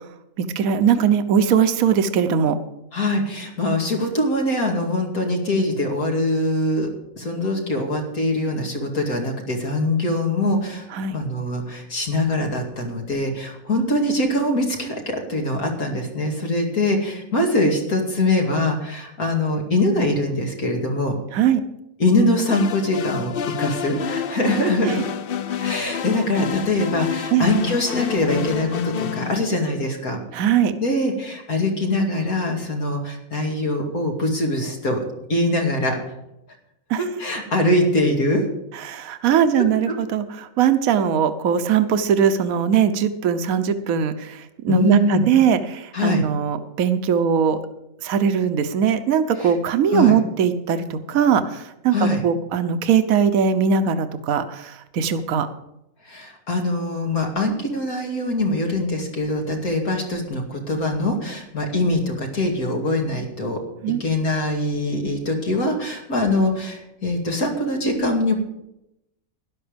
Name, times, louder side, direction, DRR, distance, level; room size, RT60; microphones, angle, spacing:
voice 1, 0.4-2.6 10.9-11.2 21.3-21.6 24.9-25.0 27.3-27.5 30.3-30.7 36.9-37.0 38.8-40.2 40.6-44.4 44.6-47.6 48.0-55.5 63.8-64.0, right 7 dB, 75° right, 10 dB, 1.3 m, -20 dB
voice 2, 2.9-6.9 7.2-10.8 11.1-21.1 22.0-25.0 25.6-30.2 30.8-35.0 35.3-36.0 37.0-38.4 39.5-39.6 44.7-45.2 45.9-46.2 49.4-49.5 49.9-50.2 51.9-52.2 56.0-63.6 64.0-68.3, left 1 dB, 90° left, 1 dB, 2.9 m, -23 dB
sound 1, 22.5-29.3, left 8 dB, 55° left, 0.6 m, -28 dB
12.5 x 11.5 x 5.1 m, 0.85 s
omnidirectional pair, 1.5 m